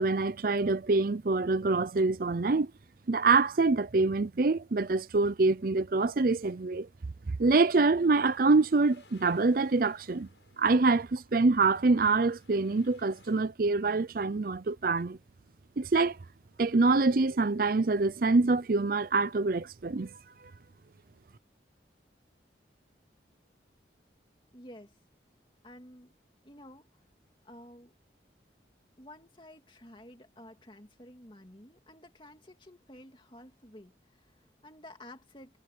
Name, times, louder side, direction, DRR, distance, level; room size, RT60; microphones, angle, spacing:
voice 1, 0.0-2.7 3.1-6.9 7.4-10.3 10.6-15.2 15.8-16.2 16.6-20.1, right 3 dB, 50° right, 0.5 m, -25 dB
sound 1, 8.1-13.4, left 3 dB, 75° left, 8.0 m, -62 dB
voice 2, 24.5-25.0 25.6-26.1 26.4-27.0 27.4-27.9 29.0-35.6, left 1 dB, 25° left, 2.6 m, -52 dB
head